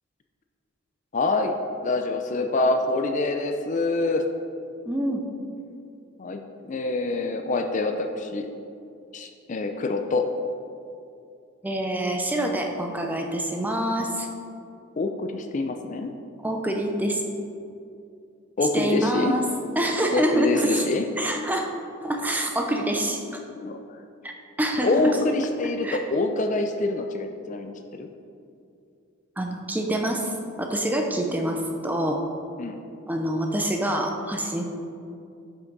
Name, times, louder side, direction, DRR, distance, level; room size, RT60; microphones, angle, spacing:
voice 1, 1.1-1.5 1.8-4.2 6.2-6.4 6.7-8.5 9.1-10.3 15.0-16.1 18.6-19.3 20.1-21.0 23.6-23.8 24.8-27.7 28.0-28.1 32.6-32.8, left 2 dB, 35° left, 5 dB, 0.4 m, -25 dB
voice 2, 4.9-5.2 11.6-14.3 16.4-17.2 18.7-19.4 19.8-20.9 21.2-21.7 22.0-23.4 24.2-25.2 25.8-26.0 29.4-32.2 33.1-34.6, right 1 dB, 10° right, 3 dB, 0.6 m, -26 dB
9.8 x 5.9 x 4.0 m, 2.6 s
head